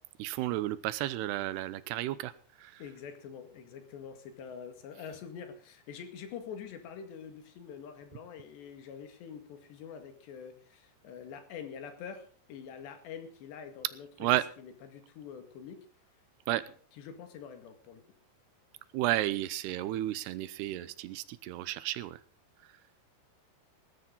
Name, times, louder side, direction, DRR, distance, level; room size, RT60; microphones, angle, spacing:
voice 1, 0.2-2.3 14.2-14.4 16.5-16.6 18.9-22.2, right 15 dB, 80° right, 16 dB, 2.8 m, -32 dB
voice 2, 2.8-15.9 16.7-18.0, left 7 dB, 85° left, 7 dB, 4.3 m, -46 dB
19.0 x 13.5 x 4.0 m, 0.41 s
omnidirectional pair, 4.9 m